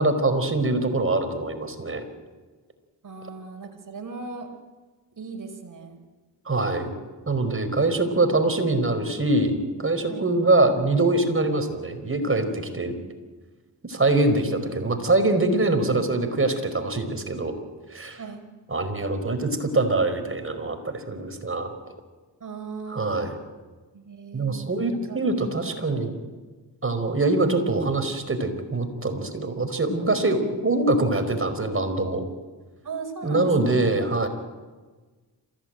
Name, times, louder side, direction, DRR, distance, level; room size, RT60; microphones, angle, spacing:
voice 1, 0.0-2.0 6.5-6.9 7.3-12.9 13.8-17.6 17.9-18.2 18.7-21.7 22.9-23.3 24.3-26.1 26.8-32.2 33.2-34.3, right 2 dB, 30° right, 8 dB, 4.9 m, -24 dB
voice 2, 3.0-4.5 5.1-6.0 10.1-10.3 18.2-18.4 22.4-23.2 23.9-24.7 25.1-25.2 25.6-25.9 30.2-30.3 32.8-33.7, right 4 dB, 45° right, 4 dB, 5.6 m, -37 dB
27.0 x 16.0 x 9.2 m, 1.3 s
supercardioid pair, 50°, 44 cm